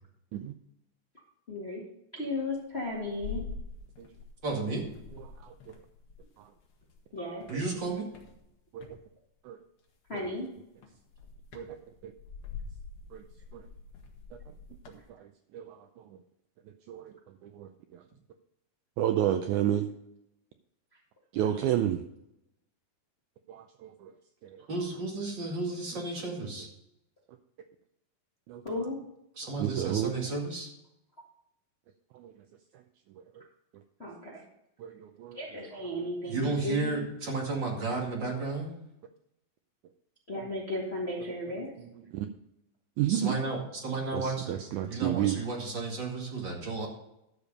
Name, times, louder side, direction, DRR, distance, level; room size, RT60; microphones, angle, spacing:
voice 1, 1.5-1.8 2.1-3.4 7.1-7.4 10.1-10.5 21.5-21.6 28.6-29.0 34.0-34.4 35.3-37.0 40.3-41.7, left 1 dB, 30° left, -3 dB, 1.2 m, -35 dB
sound 1, 2.4-4.5 4.8-7.0 7.4-9.0 10.1-10.4 10.8-15.1, left 5 dB, 55° left, 1.6 m, -45 dB
voice 2, 4.4-4.9 7.5-8.1 24.7-26.7 29.4-30.7 36.3-38.7 43.1-46.9, right 3 dB, 35° right, -1 dB, 2.4 m, -33 dB
voice 3, 5.4-5.7 6.4-6.5 7.5-7.6 8.7-9.0 9.4-9.6 10.1-10.2 11.5-11.8 12.0-12.1 13.1-13.2 13.5-13.7 14.3-14.4 14.9-16.2 16.7-17.1 17.4-18.0 19.0-19.9 21.3-22.0 23.5-24.1 24.4-24.7 28.5-28.8 29.6-30.1 32.1-32.4 32.7-32.8 33.2-33.4 33.7-33.8 34.8-35.4 40.4-40.5 41.8-42.3 43.0-43.4 44.1-45.4, right 11 dB, 85° right, 7 dB, 1.7 m, -32 dB
12.0 x 6.8 x 5.3 m, 0.83 s
omnidirectional pair, 4.2 m